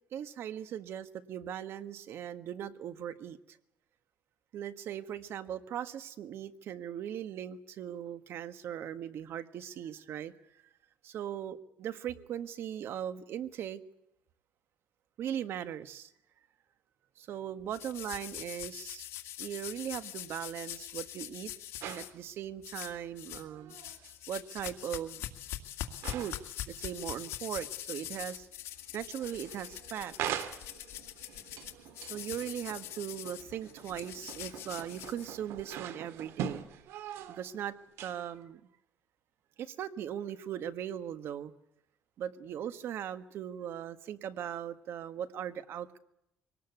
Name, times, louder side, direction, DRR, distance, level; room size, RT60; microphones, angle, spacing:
voice 1, 0.1-3.4 4.5-10.6 11.0-13.8 15.2-16.1 17.2-19.1 19.4-21.5 21.8-23.8 24.3-25.2 26.1-26.4 26.7-28.5 28.9-30.4 32.1-36.7 37.3-37.7 38.0-38.6 39.6-41.5 42.2-46.0, right 10 dB, 65° right, 11 dB, 1.5 m, -39 dB
sound 1, 17.7-22.1 22.6-23.4 23.7-35.6, left 13 dB, 85° left, 2.2 m, -43 dB
sound 2, 21.8-22.2 23.5-24.1 24.8-24.9 26.0-26.5 26.8-27.2 27.5-28.5 28.8-37.6 37.8-38.5, right 10 dB, 85° right, 2.0 m, -43 dB
24.0 x 19.0 x 8.3 m, 0.80 s
cardioid pair, 130°, 4 cm